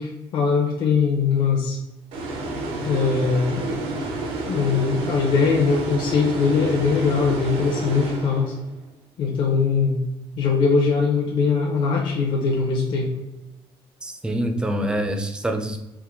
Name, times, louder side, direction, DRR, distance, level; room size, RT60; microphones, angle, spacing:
voice 1, 0.0-1.8 2.8-3.7 4.5-8.5 9.2-10.0 10.4-13.1, left 5 dB, 50° left, -2 dB, 0.7 m, -21 dB
sound 1, 2.1-8.8, right 2 dB, 90° right, 0.8 m, -29 dB
voice 2, 14.0-15.8, right 1 dB, 10° right, 6 dB, 0.4 m, -25 dB
4.6 x 2.2 x 3.5 m, 1.0 s
cardioid pair, 170°, 10 cm